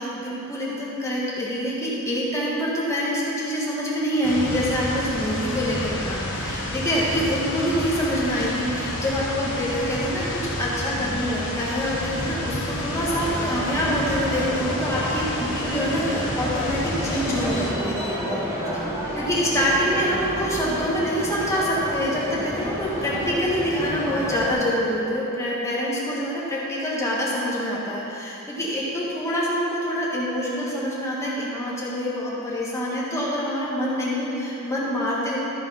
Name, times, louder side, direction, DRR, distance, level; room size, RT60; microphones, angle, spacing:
voice 1, 0.0-10.2 10.6-18.5 19.1-35.4, equal, 15° left, -7 dB, 1.7 m, -26 dB
sound 1, 4.2-17.7, left 1 dB, 60° left, 1.6 m, -30 dB
sound 2, 13.0-24.5, equal, 15° right, 1.4 m, -31 dB
13.5 x 5.1 x 5.7 m, 3.0 s
head